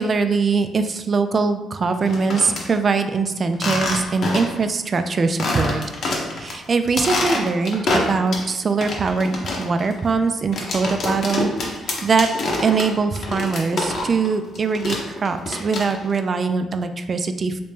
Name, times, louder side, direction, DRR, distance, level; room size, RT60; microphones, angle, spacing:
voice 1, 0.0-5.8 6.4-11.5 12.0-12.3 12.6-17.6, right 4 dB, 40° right, 8 dB, 0.3 m, -22 dB
sound 1, 1.9-2.6 3.5-4.6 5.0-5.1 5.4-6.5 6.9-8.5 8.8-14.3 14.5-16.1, left 2 dB, 60° left, 0.8 m, -26 dB
3.3 x 2.7 x 3.4 m, 1.1 s
cardioid pair, 90°, 0 cm